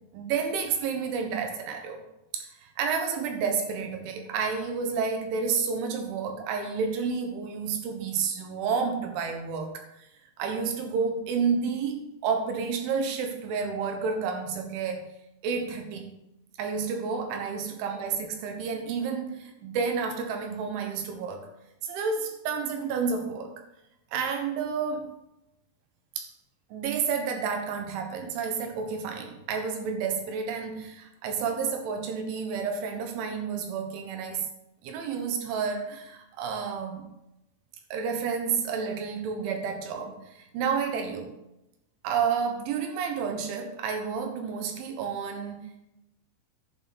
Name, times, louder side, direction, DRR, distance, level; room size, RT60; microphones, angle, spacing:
voice 1, 0.1-2.0 2.3-9.9 10.4-15.1 15.4-16.2 16.6-21.5 21.8-23.5 24.1-25.1 26.2-26.3 26.7-34.5 34.8-37.1 37.9-41.3 42.0-45.7, right 5 dB, 80° right, 3.8 m, -30 dB
11.0 x 9.4 x 4.2 m
omnidirectional pair, 5.5 m